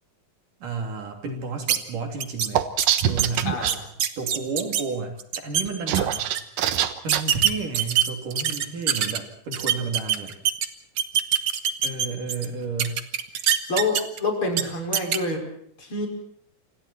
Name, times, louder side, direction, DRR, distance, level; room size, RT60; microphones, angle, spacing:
voice 1, 0.6-2.6 3.0-3.5 4.2-6.2 7.0-10.3 11.8-13.0, right 4 dB, 70° right, 4 dB, 4.8 m, -31 dB
sound 1, 1.7-1.8 2.2-2.5 2.8-4.8 5.2-5.6 5.9-6.4 7.1-9.2 9.5-10.7 11.0-12.5 12.8-14.2 14.5-14.6 14.9-15.2, right 9 dB, 55° right, 2.1 m, -23 dB
sound 2, 2.5-3.7 5.7-7.2, right 11 dB, 90° right, 2.9 m, -23 dB
voice 2, 3.4-3.9 6.0-6.2 13.7-15.5 15.8-16.1, left 2 dB, 40° left, 2 dB, 6.4 m, -27 dB
29.0 x 26.5 x 4.5 m, 0.67 s
omnidirectional pair, 3.8 m